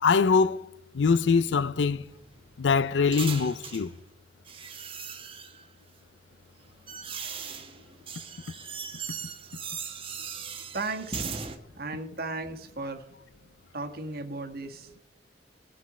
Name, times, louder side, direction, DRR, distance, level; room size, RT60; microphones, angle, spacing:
voice 1, 0.0-0.7 0.9-2.1 2.6-3.9, left 5 dB, 75° left, 0.5 m, -23 dB
sound 1, 1.5-3.9 4.5-5.7 6.4-11.6, right 6 dB, 30° right, 1.1 m, -39 dB
voice 2, 10.4-13.0 13.7-14.9, right 3 dB, 55° right, 1.5 m, -36 dB
20.0 x 7.6 x 4.2 m
head